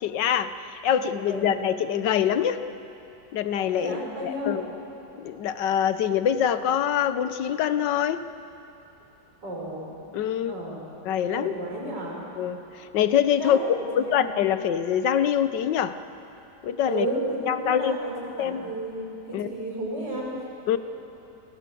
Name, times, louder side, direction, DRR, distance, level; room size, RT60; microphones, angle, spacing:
voice 1, 0.0-2.6 3.3-4.6 5.2-8.2 10.1-10.5 11.0-11.5 12.4-16.0 16.6-17.1 17.4-18.0 18.4-18.6 19.3-19.5 20.7-20.8, left 9 dB, 85° left, 12 dB, 1.5 m, -24 dB
voice 2, 1.2-1.6 3.7-4.6 9.4-9.9 10.5-10.9 11.3-12.2 13.4-14.2 16.9-18.9 19.2-20.4, right 1 dB, 80° right, -3 dB, 6.6 m, -33 dB
28.5 x 21.5 x 7.7 m, 2.9 s
omnidirectional pair, 1.8 m